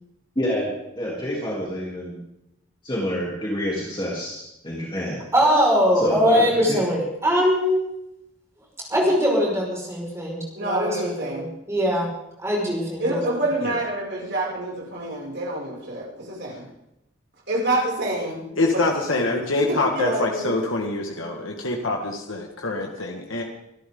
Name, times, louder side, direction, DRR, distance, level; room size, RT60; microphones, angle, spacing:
voice 1, 0.3-2.2 2.8-5.2 6.0-6.8, equal, 25° left, -5 dB, 3.3 m, -28 dB
voice 2, 5.3-7.8 8.9-11.4 11.7-12.1 12.4-13.2, equal, 15° right, -3 dB, 5.5 m, -21 dB
voice 3, 10.5-11.5 13.0-16.6 17.5-18.5 18.7-19.2 19.7-20.5, right 1 dB, 60° right, -4 dB, 6.4 m, -27 dB
voice 4, 18.6-23.4, left 2 dB, 85° left, 1 dB, 1.9 m, -25 dB
25.5 x 13.0 x 3.9 m, 0.84 s
head